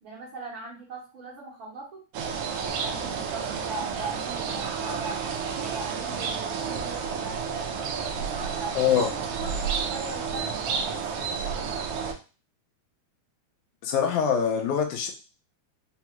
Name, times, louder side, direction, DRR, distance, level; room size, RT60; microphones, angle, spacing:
voice 1, 0.0-2.0 2.3-5.2 5.6-7.4 7.9-11.8, right 3 dB, 60° right, -5 dB, 1.4 m, -40 dB
sound 1, 2.1-12.1, right 6 dB, 85° right, 1.3 m, -31 dB
voice 2, 8.8-9.1 13.8-15.1, left 8 dB, 90° left, 3 dB, 2.3 m, -24 dB
5.6 x 2.3 x 2.9 m, 0.33 s
omnidirectional pair, 3.4 m